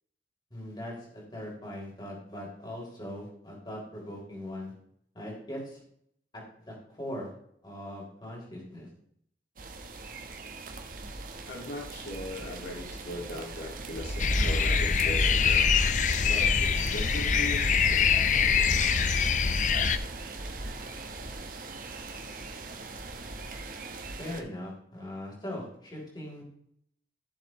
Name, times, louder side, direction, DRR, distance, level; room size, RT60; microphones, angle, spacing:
voice 1, 0.5-4.7 5.1-5.8 6.3-7.3 7.6-8.9 24.2-26.4, left 1 dB, 25° left, -3 dB, 3.8 m, -40 dB
sound 1, 9.6-24.4, right 1 dB, 50° right, 1.2 m, -37 dB
voice 2, 11.5-15.8 16.3-18.8 21.0-21.2, left 1 dB, 85° left, 1 dB, 2.2 m, -39 dB
sound 2, 14.2-20.0, left 6 dB, 45° left, 0.6 m, -24 dB
15.0 x 7.2 x 3.2 m, 0.69 s
head